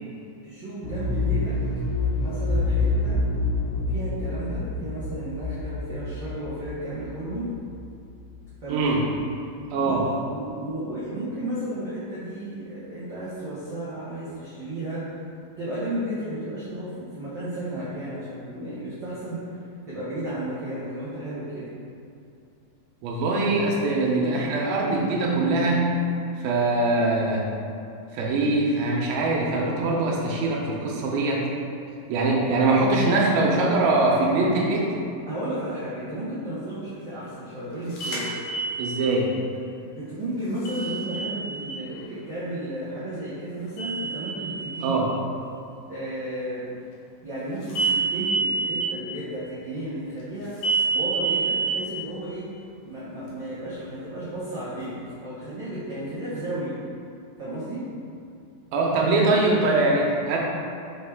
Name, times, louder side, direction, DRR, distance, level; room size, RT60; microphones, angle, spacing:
voice 1, 0.4-1.5 2.2-3.2 3.9-7.5 8.6-9.1 9.7-15.0 15.6-19.6 19.9-21.6 35.3-38.3 39.9-45.0 45.9-46.6 47.2-50.5 50.9-52.5 52.8-54.9 55.2-56.8 57.4-57.8, right 1 dB, 70° right, -12 dB, 1.1 m, -33 dB
sound 1, 0.8-8.6 8.9-9.0, left 2 dB, 85° left, 1.6 m, -27 dB
voice 2, 8.7-9.0 9.7-10.1 23.0-25.8 26.4-27.5 28.1-31.4 32.1-34.9 38.8-39.3 44.8-45.1 58.7-60.4, right 2 dB, 90° right, -2 dB, 2.7 m, -22 dB
sound 2, 38.0-39.1 40.7-41.8 43.8-44.8 47.7-48.8 50.6-51.7, right 4 dB, 65° left, 1.9 m, -27 dB
5.7 x 5.1 x 3.5 m, 2.6 s
omnidirectional pair, 4.2 m